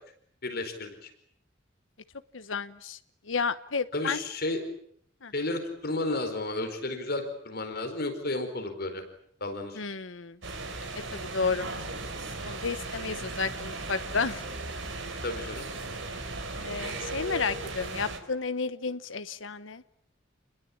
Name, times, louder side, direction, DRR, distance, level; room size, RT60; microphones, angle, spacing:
voice 1, 0.4-1.1 3.9-4.6 5.3-9.0 9.4-9.8 15.2-15.7, left 2 dB, 55° left, 6 dB, 4.6 m, -32 dB
voice 2, 2.3-3.0 3.2-4.2 5.2-5.3 9.7-10.4 11.1-11.7 12.4-14.4 16.6-19.8, left 4 dB, 85° left, 12 dB, 1.1 m, -32 dB
sound 1, 10.4-18.2, right 2 dB, 70° right, 4.4 m, -37 dB
29.5 x 21.5 x 8.7 m, 0.66 s
head